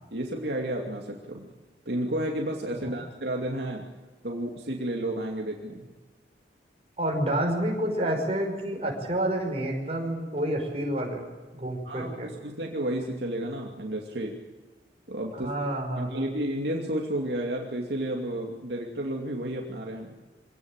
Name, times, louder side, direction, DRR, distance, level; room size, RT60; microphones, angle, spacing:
voice 1, 0.1-1.5 1.9-3.8 4.2-5.9 11.9-14.4 15.1-15.5 16.0-20.1, right 1 dB, 65° right, 0 dB, 2.6 m, -31 dB
voice 2, 7.0-11.2 11.5-12.3 15.3-16.3, right 1 dB, 35° right, 1 dB, 5.7 m, -29 dB
25.5 x 17.5 x 9.0 m, 1.3 s
head